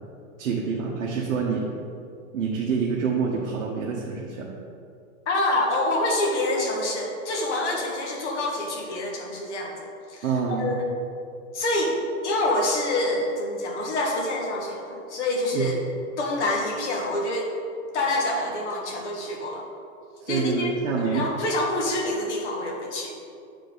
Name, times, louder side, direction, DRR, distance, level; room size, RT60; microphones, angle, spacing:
voice 1, 0.4-1.6 2.3-4.5 10.2-10.8 15.5-15.7 20.2-21.3, right 5 dB, 70° right, -3 dB, 1.2 m, -27 dB
voice 2, 5.3-10.9 11.5-11.9 12.2-15.8 16.2-17.5 17.9-19.6 20.3-20.7 21.0-23.1, left 1 dB, 55° left, 0 dB, 1.7 m, -26 dB
8.5 x 5.1 x 3.9 m, 2.4 s
hypercardioid pair, 165°, 42 cm